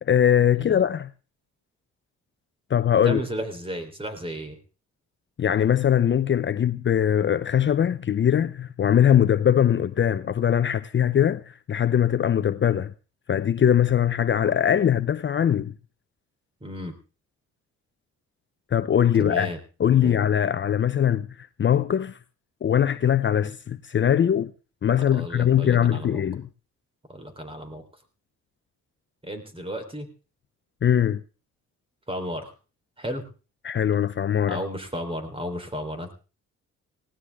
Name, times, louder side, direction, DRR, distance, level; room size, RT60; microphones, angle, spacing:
voice 1, 0.0-1.1 2.7-3.2 5.4-12.9 13.3-15.7 18.7-19.5 19.8-22.2 22.6-24.5 24.8-26.5 30.8-31.2 33.6-34.6, left 9 dB, 40° left, 0.7 m, -21 dB
voice 2, 3.0-4.6 16.6-17.0 19.1-19.6 19.9-20.2 25.1-26.2 27.1-27.8 29.2-30.1 32.1-32.5 33.0-33.2 34.5-36.1, equal, 20° right, 3.8 m, -33 dB
19.5 x 16.5 x 3.6 m
cardioid pair, 90°, 30 cm